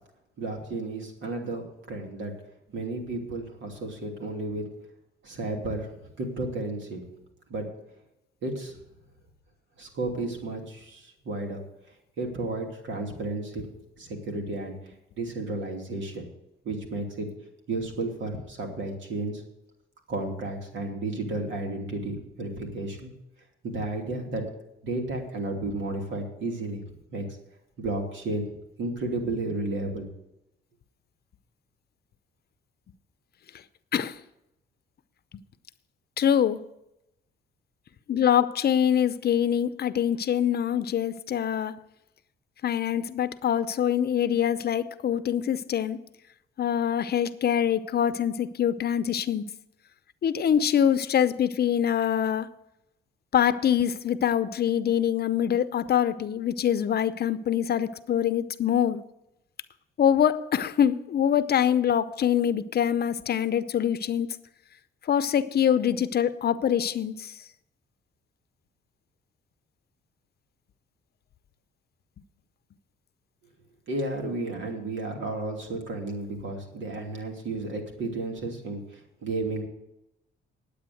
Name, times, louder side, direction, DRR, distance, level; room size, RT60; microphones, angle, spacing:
voice 1, 0.4-2.3 2.7-4.7 5.2-5.9 6.2-7.0 7.5-7.7 8.4-8.8 9.8-11.6 12.2-13.6 14.0-14.7 15.2-16.3 16.6-17.3 17.7-19.4 20.1-23.1 23.6-24.4 24.8-26.8 27.1-27.2 27.8-28.5 28.8-30.1 73.9-79.7, right 2 dB, 70° right, 2 dB, 2.9 m, -32 dB
voice 2, 36.2-36.6 38.1-41.7 42.6-46.0 46.6-49.4 50.2-52.5 53.3-59.0 60.0-64.3 65.1-67.3, left 9 dB, 55° left, 13 dB, 0.7 m, -24 dB
10.0 x 8.5 x 7.8 m, 0.86 s
cardioid pair, 90°, 20 cm